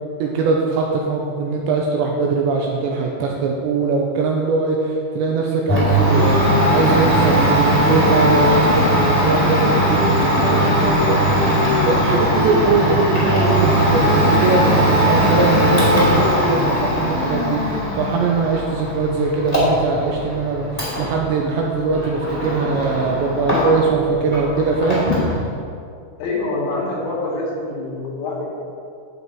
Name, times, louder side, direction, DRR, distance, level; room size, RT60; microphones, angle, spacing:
voice 1, 0.2-11.2 11.9-25.0, right 4 dB, 85° right, 0 dB, 2.6 m, -21 dB
Domestic sounds home sounds, 5.7-24.0 24.3-25.3, equal, 15° left, 1.5 m, -18 dB
voice 2, 26.2-28.7, left 2 dB, 80° left, -3 dB, 4.7 m, -25 dB
11.0 x 8.0 x 4.7 m, 2.4 s
omnidirectional pair, 5.8 m